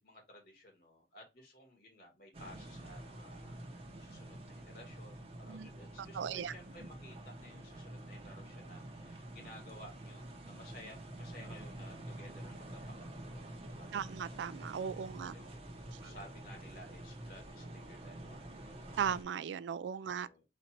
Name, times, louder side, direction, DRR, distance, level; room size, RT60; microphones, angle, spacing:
voice 1, 0.0-13.9 14.7-18.7 20.1-20.4, left 1 dB, 55° left, 2.0 m, -56 dB
sound 1, 2.3-19.2, right 1 dB, 30° right, 0.9 m, -48 dB
voice 2, 6.1-6.5 13.9-15.3 16.0-16.1 19.0-20.3, right 7 dB, 75° right, 0.3 m, -37 dB
4.2 x 2.5 x 4.4 m
head